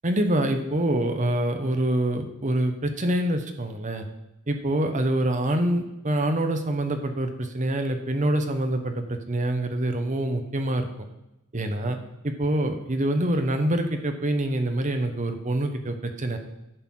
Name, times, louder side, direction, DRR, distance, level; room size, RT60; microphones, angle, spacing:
voice 1, 0.0-4.1 4.5-11.1 11.5-12.0 12.2-16.4, right 1 dB, 35° right, 6 dB, 1.0 m, -25 dB
11.0 x 4.1 x 7.5 m, 0.88 s
head